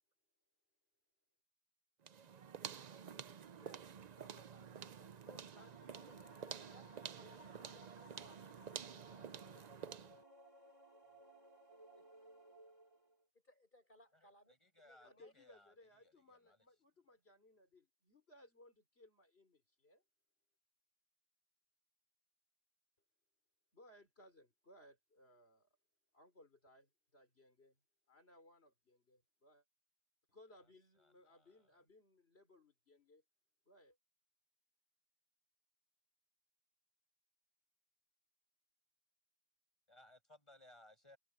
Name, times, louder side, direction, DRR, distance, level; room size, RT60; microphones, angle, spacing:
sound 1, 2.0-10.2, right 7 dB, 45° right, 0.6 m, -50 dB
voice 1, 3.5-3.9 4.2-6.9 7.4-7.8 8.2-8.5 9.5-9.8 12.0-12.1 13.4-14.5 14.8-15.3, left 1 dB, 50° left, 6.2 m, -66 dB
sound 2, 5.1-13.2, right 1 dB, 30° right, 2.6 m, -62 dB
voice 2, 5.3-7.8 8.2-9.0 9.5-10.2 11.1-11.2 15.0-20.0 23.7-25.7 26.1-27.8 28.1-29.6 30.3-33.2 33.7-34.0, left 1 dB, 75° left, 4.6 m, -65 dB
voice 3, 14.2-15.7 16.0-16.7 31.0-31.8 39.9-41.2, left 1 dB, 30° left, 6.8 m, -65 dB
omnidirectional pair, 1.1 m